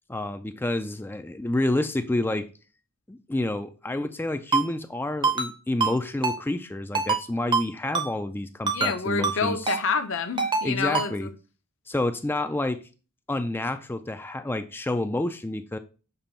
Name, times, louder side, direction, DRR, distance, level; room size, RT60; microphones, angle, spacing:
voice 1, 0.1-2.5 3.1-9.7 10.6-11.3 11.9-12.8 13.3-15.8, left 2 dB, 10° left, 0.3 m, -29 dB
Ringtone, 4.5-4.6 5.2-5.5 5.8-5.9 6.2-6.4 6.9-7.2 7.5-7.6 7.9-8.1 8.7-8.9 9.2-9.4 9.7-9.8 10.4-10.6 10.9-11.1, right 4 dB, 20° right, 0.7 m, -24 dB
voice 2, 8.7-11.3, left 5 dB, 60° left, 0.8 m, -28 dB
6.9 x 3.0 x 5.6 m
head